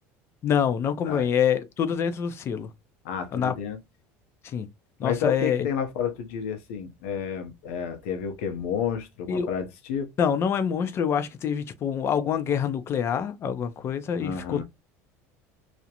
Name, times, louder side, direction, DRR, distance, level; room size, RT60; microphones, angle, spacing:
voice 1, 0.4-2.7 3.3-3.5 4.4-4.7 5.0-5.7 9.3-9.5 10.2-14.6, left 7 dB, 40° left, 0.4 m, -26 dB
voice 2, 3.0-3.8 5.0-10.1 14.2-14.6, left 7 dB, 90° left, 0.7 m, -31 dB
2.5 x 2.1 x 2.8 m
supercardioid pair, 120°, 7 cm